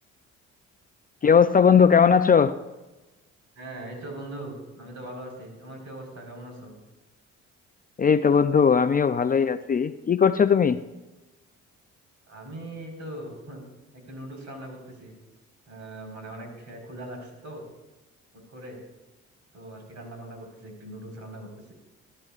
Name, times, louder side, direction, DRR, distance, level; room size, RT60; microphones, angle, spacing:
voice 1, 1.2-2.5 8.0-10.8, left 6 dB, 30° left, 11 dB, 0.4 m, -19 dB
voice 2, 3.5-6.8 12.3-13.6 13.9-15.2 15.7-17.6 18.5-18.8 19.5-21.7, right 1 dB, 65° right, 1 dB, 4.5 m, -40 dB
19.5 x 12.0 x 2.5 m, 1.1 s
cardioid pair, 90°, 30 cm